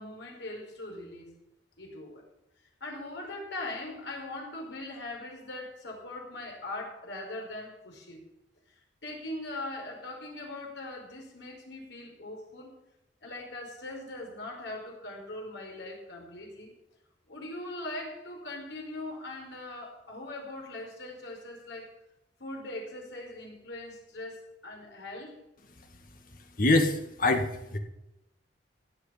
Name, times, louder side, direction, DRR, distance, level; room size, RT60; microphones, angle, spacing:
voice 1, 0.0-1.3 1.8-2.2 2.8-8.2 9.0-12.7 13.2-16.7 17.3-21.9 22.4-25.4, left 2 dB, 75° left, 0 dB, 5.2 m, -40 dB
voice 2, 26.6-27.8, left 2 dB, 50° left, 5 dB, 2.0 m, -25 dB
16.5 x 6.7 x 8.4 m, 0.86 s
head